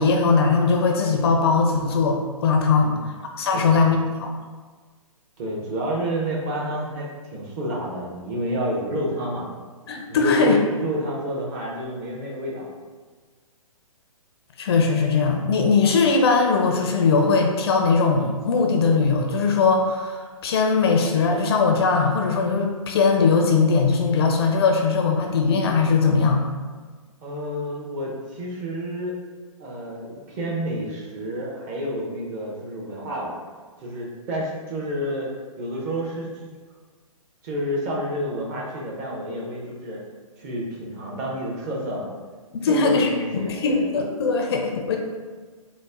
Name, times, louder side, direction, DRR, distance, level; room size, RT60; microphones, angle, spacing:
voice 1, 0.0-4.3 9.9-10.6 14.6-26.4 42.5-45.0, left 4 dB, 45° left, 2 dB, 0.5 m, -20 dB
voice 2, 2.7-3.1 3.5-3.8 5.4-7.1 7.3-9.5 10.1-12.7 27.2-29.1 29.6-33.3 33.8-36.3 37.4-40.0 40.4-42.1 42.6-43.8, equal, 30° right, -3 dB, 0.8 m, -29 dB
4.0 x 2.1 x 3.5 m, 1.4 s
hypercardioid pair, 140°, 18 cm